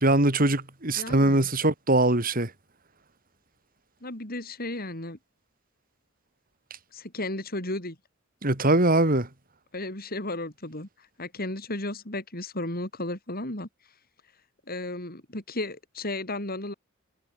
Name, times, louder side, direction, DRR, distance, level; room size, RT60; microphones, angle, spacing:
voice 1, 0.0-2.5 8.4-9.3, right 2 dB, 45° right, 3.4 m, -22 dB
voice 2, 1.0-1.5 4.0-5.2 6.9-8.0 9.7-10.9 11.2-13.7 14.7-16.7, left 2 dB, 45° left, 6.4 m, -34 dB
head